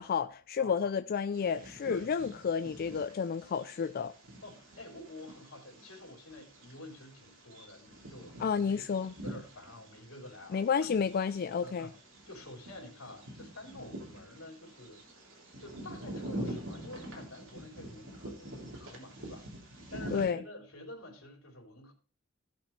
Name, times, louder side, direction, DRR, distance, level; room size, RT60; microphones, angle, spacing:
voice 1, 0.0-4.1 8.4-9.1 10.5-11.9 20.1-20.4, left 6 dB, 45° left, 0.4 m, -31 dB
voice 2, 0.6-0.9 1.9-2.1 4.4-8.8 9.2-11.0 11.6-11.9 12.3-15.2 15.6-21.9, left 1 dB, 80° left, 3.6 m, -49 dB
Bird vocalization bird call bird song, 1.3-20.2, right 1 dB, 65° right, 3.3 m, -46 dB
16.5 x 6.1 x 3.2 m
head